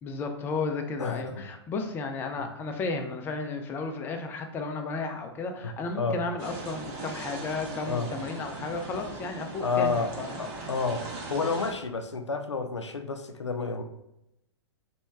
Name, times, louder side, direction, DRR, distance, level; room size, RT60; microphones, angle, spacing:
voice 1, 0.0-10.4, left 3 dB, 15° left, 4 dB, 0.3 m, -33 dB
voice 2, 1.0-1.4 2.4-2.5 5.6-5.7 6.0-6.2 7.9-8.1 9.6-10.1 10.4-11.0 11.3-13.8, left 4 dB, 85° left, 7 dB, 0.4 m, -30 dB
sound 1, 6.4-11.7, right 3 dB, 40° right, 0.8 m, -39 dB
2.9 x 2.2 x 3.3 m, 0.83 s
figure-of-eight pair, 110°, 14 cm